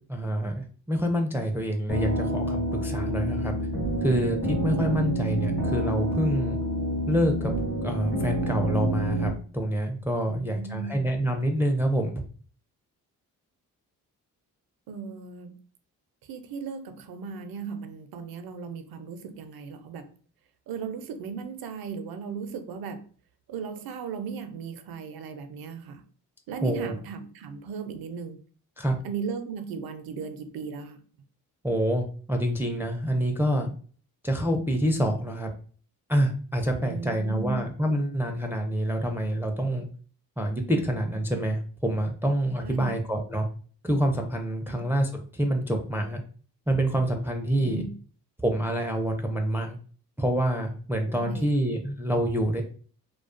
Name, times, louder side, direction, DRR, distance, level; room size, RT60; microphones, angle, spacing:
voice 1, 0.1-3.5 4.0-6.6 7.1-7.5 7.8-12.2 26.6-26.9 28.8-28.9 31.6-33.7 34.2-35.5 36.1-39.9 40.4-43.5 43.8-46.2 46.7-47.9 48.4-49.8 50.2-52.6, right 1 dB, 5° right, 0.4 m, -27 dB
sound 1, 1.9-9.3, right 1 dB, 85° left, 1.0 m, -28 dB
voice 2, 10.3-11.1 14.9-15.5 16.2-20.1 20.7-23.1 23.5-26.0 26.5-28.4 29.0-31.0 36.8-37.6 42.6-42.9 44.7-44.9 47.6-48.0 51.1-51.5, right 6 dB, 65° right, 0.5 m, -37 dB
2.3 x 2.2 x 2.4 m
supercardioid pair, 50°, 39 cm